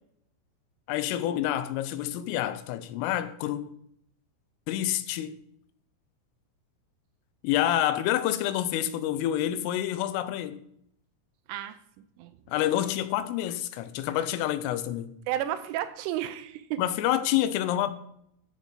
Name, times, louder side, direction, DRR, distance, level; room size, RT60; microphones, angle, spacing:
voice 1, 0.9-3.7 4.7-5.3 7.4-10.6 12.5-15.1 16.8-17.9, left 12 dB, 85° left, 3.2 m, -28 dB
voice 2, 11.5-11.8 12.2-12.4 15.3-16.8, right 12 dB, 80° right, 3.1 m, -32 dB
14.0 x 6.4 x 5.6 m
omnidirectional pair, 5.9 m